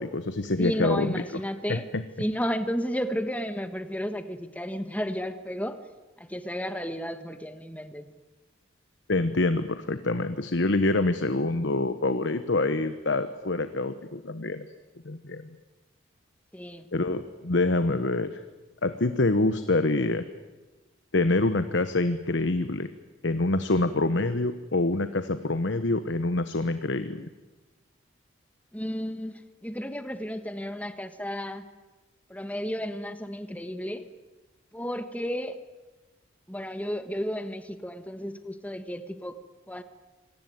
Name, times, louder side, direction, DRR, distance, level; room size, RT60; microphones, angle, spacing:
voice 1, 0.0-1.1 1.7-2.0 9.1-14.6 15.0-15.6 16.9-18.4 18.8-20.2 21.1-22.9 23.2-27.3, left 2 dB, 65° left, 11 dB, 1.0 m, -26 dB
voice 2, 0.6-1.9 2.2-5.8 6.2-8.1 16.5-16.9 28.7-31.6 32.3-34.0 34.7-35.6 36.5-39.4 39.7-39.8, equal, 5° left, 9 dB, 1.4 m, -33 dB
26.0 x 19.0 x 9.4 m, 1.2 s
head